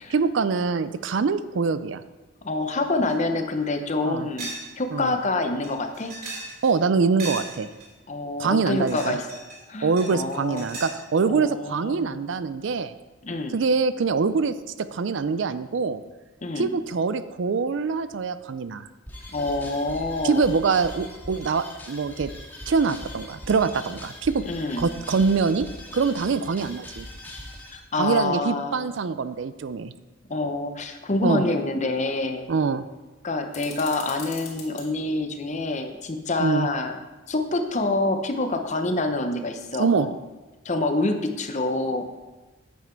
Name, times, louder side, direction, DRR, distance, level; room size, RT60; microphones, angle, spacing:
voice 1, 0.0-2.0 4.0-4.3 4.9-5.1 6.6-7.7 8.4-9.2 9.8-12.9 13.5-16.0 16.6-18.9 20.2-22.3 22.7-24.4 24.8-25.7 25.9-27.1 28.0-29.9 31.2-31.4 32.5-32.9 36.4-36.7 39.8-40.1, right 5 dB, 65° right, 13 dB, 0.4 m, -24 dB
voice 2, 2.4-4.5 4.8-6.1 8.1-9.3 9.7-10.7 11.3-12.1 13.2-13.5 16.4-16.7 19.3-20.5 24.5-24.9 27.7-28.9 30.3-32.5 33.2-37.0 37.3-40.1 40.6-42.0, left 2 dB, 35° left, 6 dB, 0.7 m, -27 dB
sound 1, 3.1-3.2 3.6-3.7 4.4-4.7 5.0-5.1 5.6-6.8 7.2-7.9 8.6-9.6 10.0-11.0, right 2 dB, 45° right, 3.1 m, -37 dB
sound 2, 19.1-27.8, left 1 dB, 10° left, 1.8 m, -41 dB
sound 3, 33.5-34.9, left 6 dB, 55° left, 2.6 m, -40 dB
9.2 x 7.3 x 4.5 m, 1.2 s
head